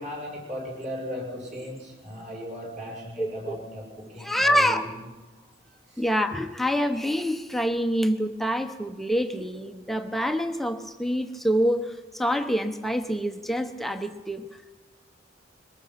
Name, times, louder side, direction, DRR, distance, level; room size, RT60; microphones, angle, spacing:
voice 1, 0.0-4.9 5.9-6.0, equal, 40° right, -1 dB, 6.8 m, -37 dB
voice 2, 3.2-3.6 4.2-4.8 6.0-14.5, equal, ahead, 6 dB, 0.9 m, -26 dB
23.0 x 20.5 x 5.8 m, 1.2 s
head